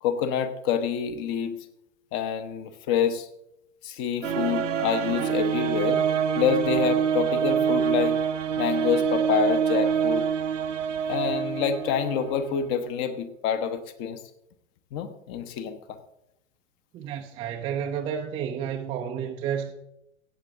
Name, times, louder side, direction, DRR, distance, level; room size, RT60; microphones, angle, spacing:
voice 1, 0.0-1.6 2.1-3.3 3.8-6.1 6.4-8.2 8.6-10.3 11.1-14.2 14.9-15.8, left 7 dB, 30° left, 1.0 m, -27 dB
sound 1, 4.2-12.6, right 7 dB, 70° right, 0.8 m, -26 dB
voice 2, 16.9-19.7, right 8 dB, 15° right, 0.5 m, -31 dB
16.5 x 8.4 x 3.6 m
figure-of-eight pair, 100°, 38 cm